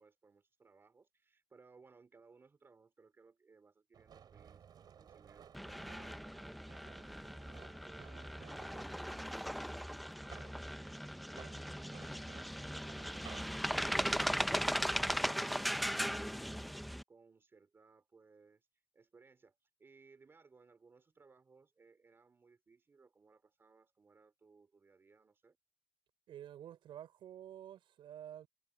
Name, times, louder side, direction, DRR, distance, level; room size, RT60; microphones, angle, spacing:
voice 1, 0.0-25.6, right 4 dB, 25° right, 4.2 m, -65 dB
sound 1, 3.9-9.0 9.8-10.6 11.2-13.6, right 8 dB, 55° right, 7.4 m, -57 dB
sound 2, 5.5-17.0, equal, ahead, 0.5 m, -38 dB
voice 2, 26.3-28.5, right 11 dB, 85° right, 4.4 m, -50 dB
wide cardioid pair, 160°, 8 cm